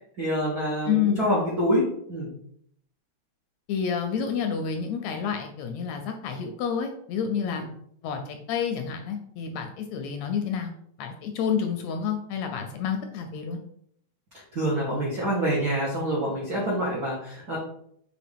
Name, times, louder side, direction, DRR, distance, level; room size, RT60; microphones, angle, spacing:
voice 1, 0.2-2.3 7.4-7.6 14.5-17.6, equal, 80° right, -5 dB, 0.8 m, -26 dB
voice 2, 0.9-1.2 3.7-7.6 8.0-10.7 11.0-13.6, left 7 dB, 80° left, 5 dB, 1.6 m, -29 dB
5.9 x 2.4 x 3.4 m, 0.67 s
omnidirectional pair, 3.4 m